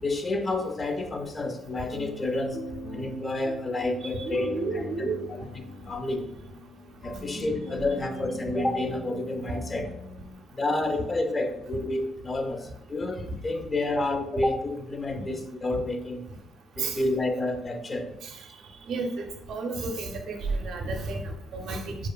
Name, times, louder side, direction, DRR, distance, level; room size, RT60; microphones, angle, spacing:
voice 1, 0.0-2.6 2.9-5.1 5.8-6.2 7.0-9.9 10.5-16.2 16.8-18.1, left 2 dB, 30° left, 5 dB, 0.4 m, -29 dB
sound 1, 1.0-10.3, left 1 dB, 85° left, 0.6 m, -40 dB
voice 2, 4.0-5.3 16.8-17.0 18.2-18.3 18.9-22.0, right 3 dB, 75° right, 3 dB, 0.4 m, -32 dB
2.8 x 2.4 x 2.2 m, 0.85 s
cardioid pair, 90°, 0 cm